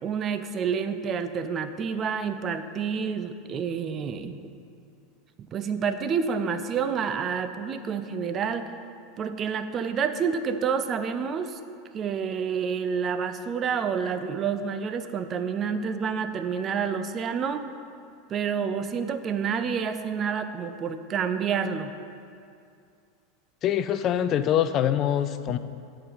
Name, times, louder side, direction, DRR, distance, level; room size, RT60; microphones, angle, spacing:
voice 1, 0.0-4.4 5.4-8.7 9.2-11.6 11.9-17.7 18.3-21.9, right 6 dB, 30° right, 10 dB, 0.5 m, -28 dB
voice 2, 23.6-25.6, left 10 dB, 35° left, 11 dB, 0.4 m, -24 dB
10.5 x 5.0 x 5.6 m, 2.4 s
figure-of-eight pair, 80°, 0 cm